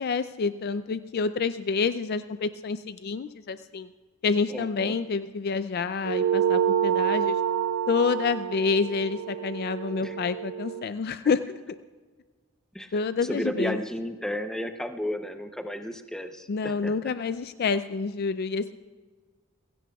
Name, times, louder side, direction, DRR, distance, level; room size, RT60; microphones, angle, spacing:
voice 1, 0.0-3.9 4.2-7.4 7.9-11.6 12.9-13.8 16.5-18.7, left 5 dB, 50° left, 11 dB, 0.4 m, -28 dB
voice 2, 4.5-5.0 10.0-10.2 12.7-16.9, equal, 5° left, 7 dB, 0.7 m, -33 dB
sound 1, 6.0-10.9, right 9 dB, 75° right, 0.4 m, -27 dB
29.0 x 16.0 x 2.3 m, 1.4 s
head